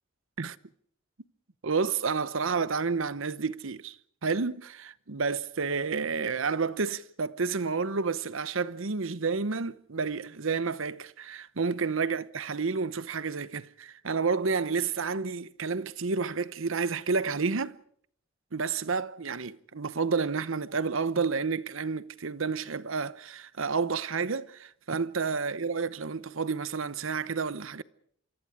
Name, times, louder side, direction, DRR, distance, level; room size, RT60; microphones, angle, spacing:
voice 1, 1.6-4.0 4.2-17.8 18.5-27.8, right 5 dB, 65° right, 0.9 m, -30 dB
27.5 x 25.0 x 4.9 m
head